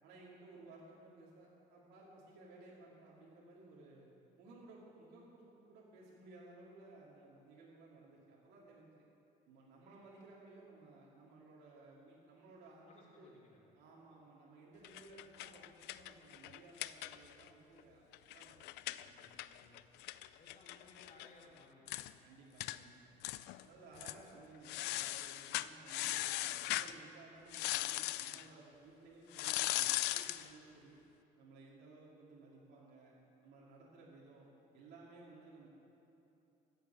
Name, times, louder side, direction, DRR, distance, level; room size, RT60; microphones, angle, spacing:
voice 1, 0.0-4.1 4.4-9.0 9.5-13.3 13.7-19.8 22.2-23.1 23.6-31.0 31.4-33.1 33.4-35.7, right 2 dB, 80° right, -5 dB, 2.5 m, -58 dB
voice 2, 12.9-13.7 20.3-22.0, left 2 dB, 45° left, -3 dB, 2.8 m, -61 dB
sound 1, 14.8-17.5 17.8-17.9 18.1-21.3 21.6-21.7 21.9-22.1 22.6-22.8 23.2-23.6 24.0-24.2 24.7-26.9 27.5-28.4 29.3-30.5, left 16 dB, 85° left, 0.4 m, -39 dB
14.0 x 7.1 x 8.9 m, 2.9 s
cardioid pair, 110°, 17 cm